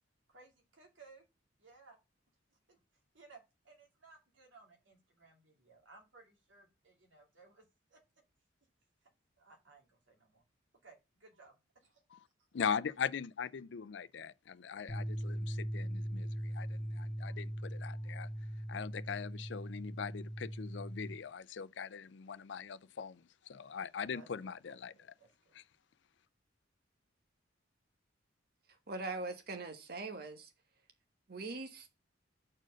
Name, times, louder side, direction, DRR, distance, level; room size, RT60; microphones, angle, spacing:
voice 1, 0.3-1.2 1.6-2.0 2.7-2.8 3.1-7.6 7.9-8.0 9.4-10.4 10.8-12.0 24.1-25.6, right 3 dB, 80° right, 2.5 m, -60 dB
voice 2, 12.5-18.3 18.7-24.9 25.5-25.6, left 6 dB, 65° left, 0.5 m, -41 dB
sound 1, 14.9-21.1, equal, 10° left, 1.3 m, -40 dB
voice 3, 28.9-30.5 31.3-31.9, right 3 dB, 50° right, 1.1 m, -41 dB
6.2 x 4.5 x 6.3 m
head